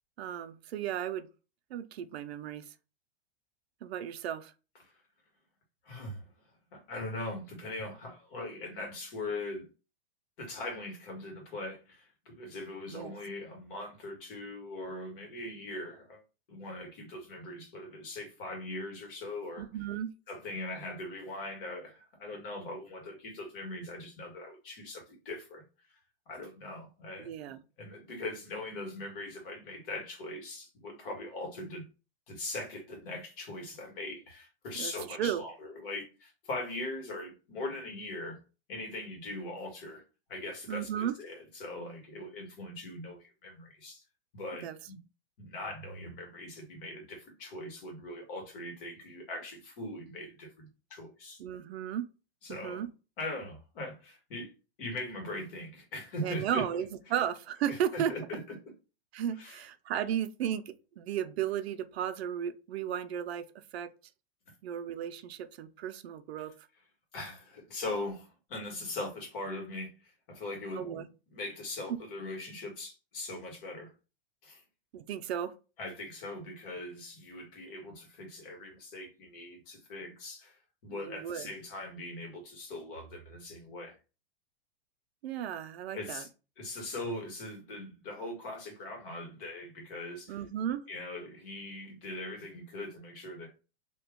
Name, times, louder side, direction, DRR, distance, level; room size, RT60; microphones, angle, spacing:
voice 1, 0.2-1.3 1.7-2.6 3.8-4.5 12.9-13.1 19.6-20.1 27.2-27.6 34.8-35.4 40.7-41.1 44.6-44.8 51.4-52.0 52.5-52.9 56.2-58.1 59.1-60.6 61.0-63.4 63.7-63.9 64.6-66.5 70.7-71.0 71.9-72.0 74.9-75.5 80.9-81.5 85.2-86.2 90.3-90.9, right 9 dB, 80° right, 0.6 m, -34 dB
voice 2, 5.8-6.3 6.7-9.7 10.4-16.2 16.5-19.7 20.3-26.0 26.3-27.3 27.8-31.8 32.3-38.4 38.7-40.0 40.3-44.0 44.3-45.0 45.4-51.4 52.4-52.8 53.2-54.5 54.8-56.6 57.7-58.4 59.4-59.6 67.1-73.9 74.4-74.6 75.8-83.9 85.9-86.3 86.6-90.4 90.9-93.5, left 2 dB, 60° left, 1.7 m, -41 dB
2.9 x 2.3 x 3.5 m
supercardioid pair, 155°, 31 cm